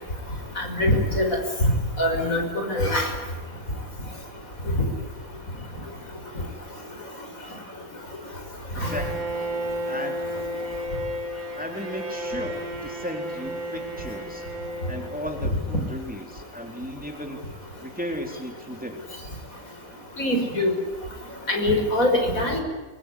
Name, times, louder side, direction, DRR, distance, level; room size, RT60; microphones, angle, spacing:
voice 1, 0.6-1.7 2.0-3.1 8.8-8.9 20.2-20.7 21.5-22.6, left 1 dB, 70° left, 4 dB, 6.1 m, -23 dB
voice 2, 8.7-9.3 9.9-10.2 11.5-14.5 14.9-17.4 17.8-19.0, equal, 5° right, 3 dB, 3.8 m, -35 dB
Bowed string instrument, 8.8-15.7, equal, 30° right, 4.2 m, -33 dB
24.5 x 22.5 x 9.9 m, 1.2 s
omnidirectional pair, 1.5 m